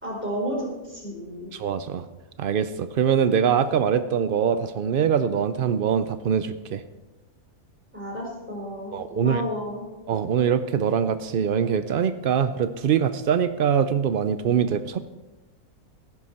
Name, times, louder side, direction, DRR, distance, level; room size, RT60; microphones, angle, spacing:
voice 1, 0.0-1.6 7.9-9.9, equal, 5° right, -2 dB, 4.1 m, -32 dB
voice 2, 1.5-2.1 2.4-6.8 8.9-9.4 10.1-15.0, right 8 dB, 85° right, 12 dB, 0.4 m, -23 dB
15.0 x 11.0 x 4.3 m, 1.1 s
omnidirectional pair, 1.6 m